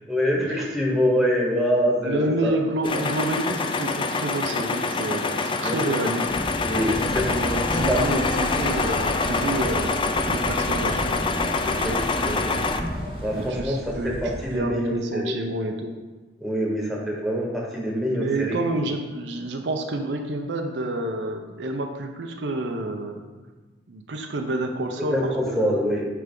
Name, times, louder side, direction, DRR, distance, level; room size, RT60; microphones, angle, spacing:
voice 1, 0.1-2.6 5.6-5.8 6.7-7.3 7.9-8.3 11.6-11.9 12.3-12.6 13.2-15.4 16.4-18.6 25.1-26.1, equal, ahead, -3 dB, 1.2 m, -25 dB
voice 2, 2.0-6.3 7.2-11.4 11.7-12.5 13.5-16.0 18.1-23.3 23.9-25.7, right 2 dB, 80° right, 3 dB, 0.6 m, -29 dB
sound 1, 2.8-12.8, left 3 dB, 30° left, 0.4 m, -26 dB
sound 2, 6.2-13.5, equal, 55° left, 1.7 m, -33 dB
sound 3, 6.9-14.6, right 1 dB, 30° right, 0.4 m, -37 dB
9.2 x 3.3 x 3.8 m, 1.2 s
head